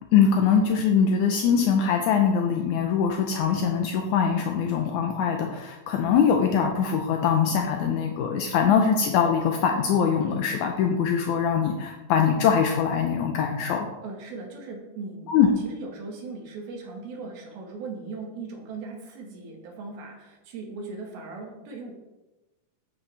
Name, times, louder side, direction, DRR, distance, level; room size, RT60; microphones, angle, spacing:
voice 1, 0.1-13.9 15.3-15.5, left 7 dB, 80° left, 3 dB, 1.7 m, -22 dB
voice 2, 14.0-15.3 15.6-21.9, right 3 dB, 80° right, 0 dB, 3.5 m, -38 dB
10.0 x 8.2 x 3.3 m, 1.1 s
omnidirectional pair, 4.3 m